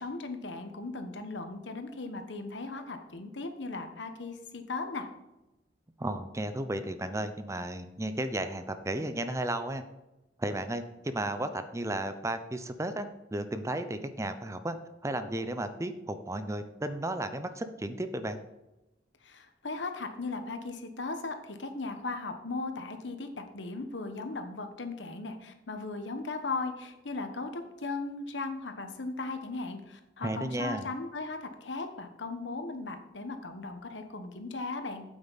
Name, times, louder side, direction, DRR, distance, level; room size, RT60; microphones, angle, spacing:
voice 1, 0.0-5.1 19.2-35.0, left 3 dB, 85° left, 7 dB, 1.2 m, -37 dB
voice 2, 6.0-9.8 10.4-14.8 15.0-18.4 30.2-30.9, right 1 dB, 15° right, 10 dB, 0.6 m, -34 dB
8.7 x 8.2 x 4.1 m, 0.97 s
head